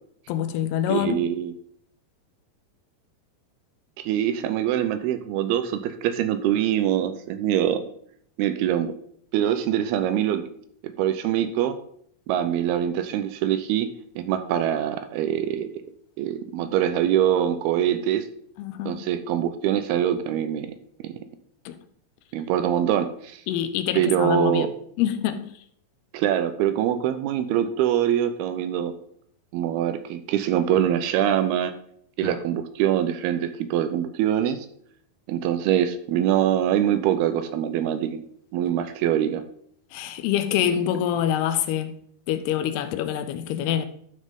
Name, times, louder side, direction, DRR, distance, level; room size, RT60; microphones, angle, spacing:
voice 1, 0.3-1.2 18.6-19.0 21.7-21.8 23.5-24.7 25.0-25.4 39.9-41.9 42.3-43.9, left 10 dB, 90° left, 2.7 m, -25 dB
voice 2, 0.9-1.5 4.0-7.8 8.4-8.9 9.3-10.4 11.0-11.8 12.3-13.9 14.2-15.8 16.2-18.2 18.9-20.7 21.0-21.1 22.3-23.4 23.9-24.7 26.1-28.9 29.5-31.7 32.2-34.6 35.3-38.2 38.5-39.4, right 10 dB, 85° right, 2.6 m, -24 dB
12.0 x 6.4 x 3.6 m
omnidirectional pair, 4.6 m